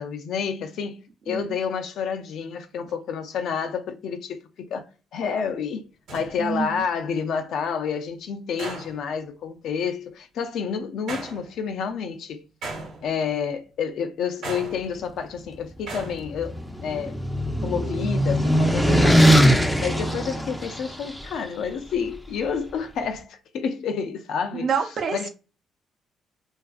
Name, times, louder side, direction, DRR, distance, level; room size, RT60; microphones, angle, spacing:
voice 1, 0.0-12.4 13.0-17.2 17.6-24.7 25.1-25.3, left 6 dB, 75° left, 0.3 m, -29 dB
sound 1, 5.2-5.3 6.1-6.8 8.6-9.2 11.1-11.7 12.6-13.4 14.4-15.3 15.9-16.4, right 3 dB, 85° right, 0.9 m, -37 dB
voice 2, 6.4-6.8 24.5-25.3, right 6 dB, 60° right, 0.6 m, -27 dB
sound 2, 16.0-21.2, equal, 5° left, 0.4 m, -20 dB
2.4 x 2.4 x 2.3 m
cardioid pair, 80°, 0 cm